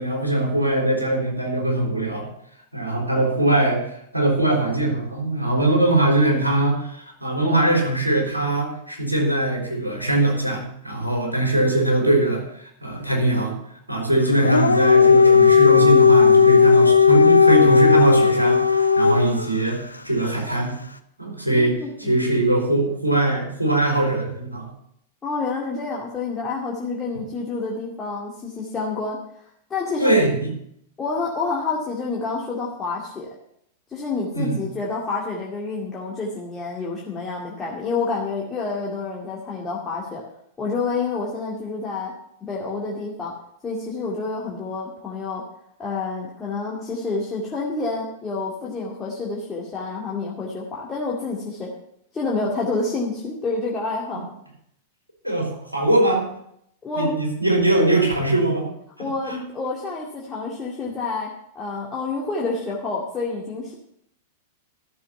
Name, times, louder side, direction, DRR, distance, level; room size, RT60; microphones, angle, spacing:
voice 1, 0.0-2.3 2.7-3.8 4.1-13.5 13.9-20.7 21.2-24.7 30.0-30.5 34.3-34.6 55.2-56.2 57.0-58.7 59.3-59.4, right 1 dB, 90° right, 0 dB, 3.9 m, -21 dB
Dog, 14.3-19.5, left 5 dB, 80° left, 0.6 m, -14 dB
voice 2, 21.5-22.2 25.2-29.2 29.7-30.1 31.0-33.3 33.9-40.2 40.6-42.1 42.4-43.3 43.6-45.4 45.8-51.7 52.1-54.2 56.8-57.1 59.0-61.3 61.5-63.7, left 3 dB, 20° left, -4 dB, 2.3 m, -28 dB
13.0 x 6.9 x 6.8 m, 0.72 s
figure-of-eight pair, 95°, 0 cm